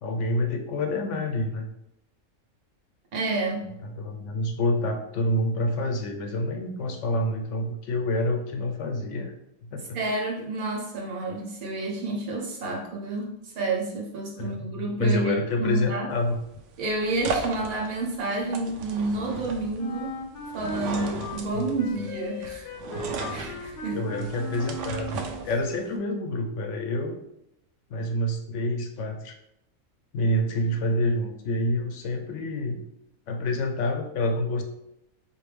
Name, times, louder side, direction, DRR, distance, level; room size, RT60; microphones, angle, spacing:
voice 1, 0.0-1.7 4.0-9.3 9.6-10.0 14.4-16.4 21.5-21.7 23.9-27.2 27.9-29.3 30.1-32.8 33.3-34.6, left 1 dB, 65° left, 4 dB, 0.8 m, -27 dB
voice 2, 3.1-3.7 9.9-15.3 15.6-16.1 16.8-20.1 20.5-22.7 23.0-24.2, right 2 dB, 85° right, -1 dB, 1.4 m, -30 dB
sound 1, 16.1-26.0, right 3 dB, 70° right, 0.8 m, -36 dB
Wind instrument woodwind instrument, 19.8-25.5, equal, 85° left, 1.1 m, -37 dB
4.4 x 2.6 x 3.3 m, 0.82 s
omnidirectional pair, 1.5 m